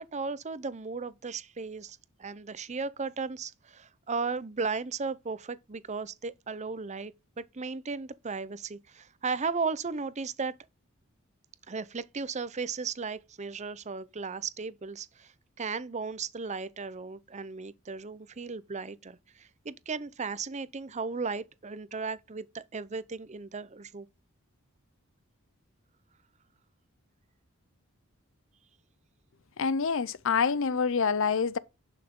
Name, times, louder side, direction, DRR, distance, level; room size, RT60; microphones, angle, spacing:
voice 1, 0.0-10.5 11.7-24.1, right 4 dB, 35° right, 0.7 m, -36 dB
voice 2, 29.6-31.6, left 5 dB, 65° left, 0.6 m, -26 dB
11.5 x 5.9 x 3.7 m
head